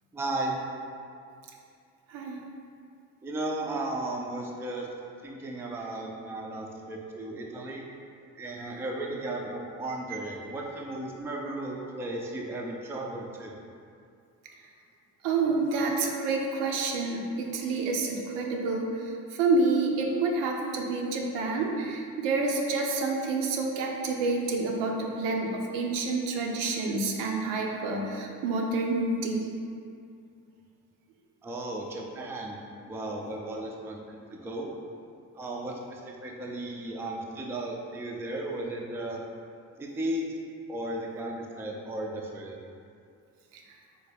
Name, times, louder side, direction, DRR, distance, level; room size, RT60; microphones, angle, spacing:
voice 1, 0.1-0.6 3.2-4.9 5.2-7.9 8.4-13.5 31.4-32.6 32.9-34.7 35.4-39.2 39.8-40.3 40.7-42.6, right 1 dB, 5° right, -1 dB, 0.3 m, -35 dB
voice 2, 15.2-18.9 19.4-29.5, right 3 dB, 75° right, 0 dB, 0.6 m, -28 dB
3.6 x 2.1 x 3.3 m, 2.4 s
hypercardioid pair, 40°, 42 cm